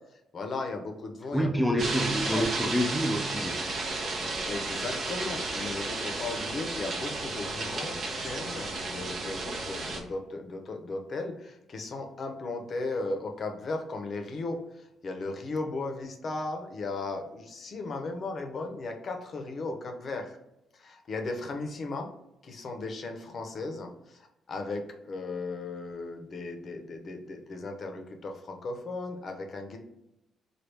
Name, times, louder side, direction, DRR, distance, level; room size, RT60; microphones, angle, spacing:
voice 1, 0.3-1.6 2.2-2.4 4.4-20.4 20.8-22.1 22.4-24.2 24.5-29.8, left 3 dB, 50° left, 4 dB, 0.6 m, -36 dB
voice 2, 1.3-3.7, equal, ahead, 3 dB, 0.3 m, -27 dB
sound 1, 1.8-10.0, right 2 dB, 55° right, 0.7 m, -33 dB
3.3 x 2.3 x 3.2 m, 0.86 s
cardioid pair, 90°, 0 cm